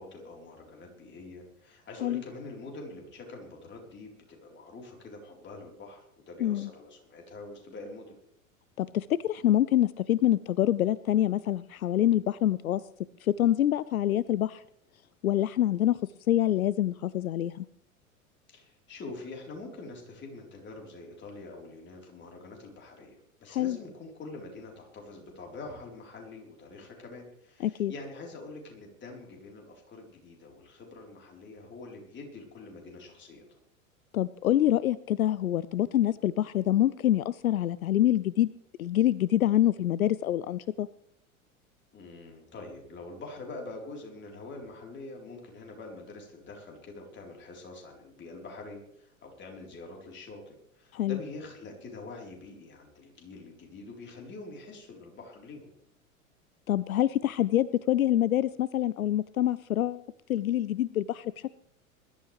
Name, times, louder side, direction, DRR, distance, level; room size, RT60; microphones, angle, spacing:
voice 1, 0.0-8.1 18.5-33.4 41.9-55.7, left 3 dB, 25° left, 0 dB, 4.2 m, -45 dB
voice 2, 6.4-6.7 8.8-12.8 13.2-14.6 15.2-16.0 16.3-17.7 23.5-23.8 27.6-27.9 34.1-38.5 38.8-40.9 50.9-51.2 56.7-60.0 60.3-61.5, left 12 dB, 75° left, 18 dB, 0.6 m, -26 dB
21.5 x 12.5 x 3.4 m, 0.73 s
figure-of-eight pair, 90°, 42 cm